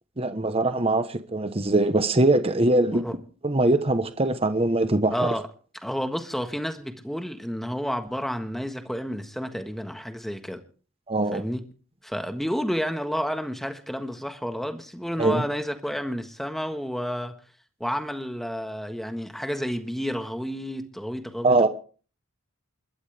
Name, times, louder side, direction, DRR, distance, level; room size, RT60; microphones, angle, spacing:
voice 1, 0.2-3.0 3.4-5.3 11.1-11.4 15.2-15.4 21.4-21.7, right 2 dB, 25° right, 1.1 m, -22 dB
voice 2, 2.7-3.1 5.1-5.5 5.8-10.6 11.3-11.6 12.0-17.3 17.8-21.7, equal, ahead, 1.5 m, -30 dB
29.0 x 12.5 x 3.5 m
head